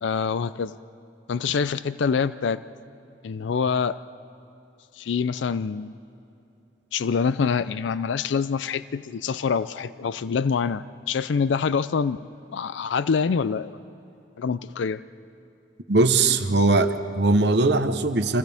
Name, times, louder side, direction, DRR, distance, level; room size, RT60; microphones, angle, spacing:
voice 1, 0.0-0.8 1.3-2.6 3.2-4.0 4.9-5.9 6.9-12.2 12.5-13.8 14.4-15.0, left 5 dB, 80° left, 15 dB, 0.4 m, -25 dB
voice 2, 15.9-18.4, right 3 dB, 65° right, 9 dB, 1.0 m, -20 dB
30.0 x 26.0 x 3.5 m, 2.9 s
head